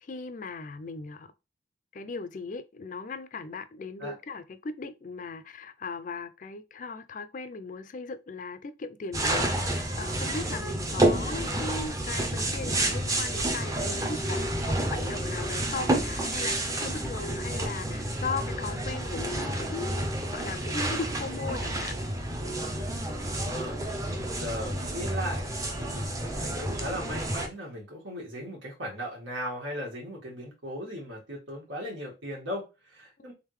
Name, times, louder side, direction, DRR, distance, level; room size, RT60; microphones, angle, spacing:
voice 1, 0.0-1.3 1.9-20.0 20.3-22.0, left 4 dB, 40° left, 0.4 m, -38 dB
sound 1, 9.1-27.5, right 1 dB, 15° right, 0.5 m, -30 dB
voice 2, 23.1-23.8 24.3-33.3, equal, 90° right, 1.9 m, -38 dB
3.7 x 3.5 x 3.1 m
head